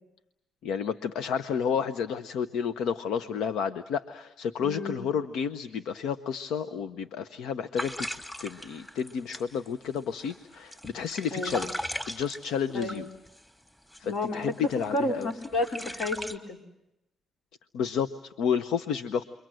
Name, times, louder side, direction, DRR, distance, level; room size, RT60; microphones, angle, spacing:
voice 1, 0.6-8.1 8.4-13.1 14.0-15.3 17.7-19.2, left 7 dB, 85° left, 11 dB, 0.9 m, -31 dB
voice 2, 4.6-5.1 11.3-11.6 12.7-13.0 14.0-14.4 14.9-16.6, left 1 dB, 65° left, 2 dB, 4.4 m, -31 dB
sound 1, 7.8-13.4 13.9-14.1 14.4-16.4, equal, 15° left, 2.8 m, -38 dB
30.0 x 24.0 x 7.7 m, 0.92 s
cardioid pair, 90°, 0 cm